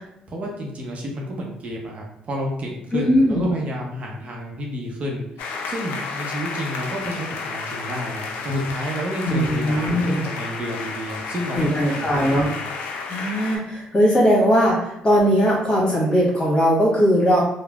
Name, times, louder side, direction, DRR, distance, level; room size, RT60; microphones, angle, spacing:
voice 1, 0.3-12.6, equal, 50° right, -1 dB, 0.6 m, -30 dB
voice 2, 2.9-3.5 9.2-10.2 11.5-12.5 13.1-17.4, equal, 30° left, -4 dB, 1.4 m, -19 dB
sound 1, 5.4-13.6, left 4 dB, 75° left, 0.4 m, -32 dB
3.1 x 2.0 x 2.3 m, 0.80 s
supercardioid pair, 60°, 3 cm